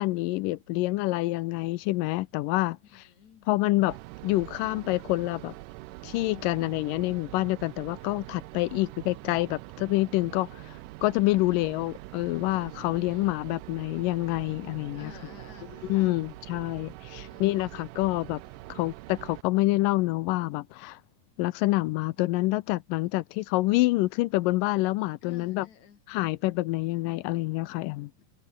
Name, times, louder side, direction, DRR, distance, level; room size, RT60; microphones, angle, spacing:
voice 1, 0.0-3.1 3.5-4.0 4.2-5.5 6.0-15.1 15.9-18.4 18.7-21.0 21.4-25.7 26.1-28.1, left 19 dB, 80° left, 2.1 m, -27 dB
voice 2, 2.8-3.5 11.5-11.8 13.1-13.4 14.9-16.1 17.1-17.4 18.5-18.7 25.2-26.0, left 8 dB, 55° left, 3.0 m, -51 dB
sound 1, 3.9-19.4, right 21 dB, 90° right, 1.8 m, -44 dB
omnidirectional pair, 4.2 m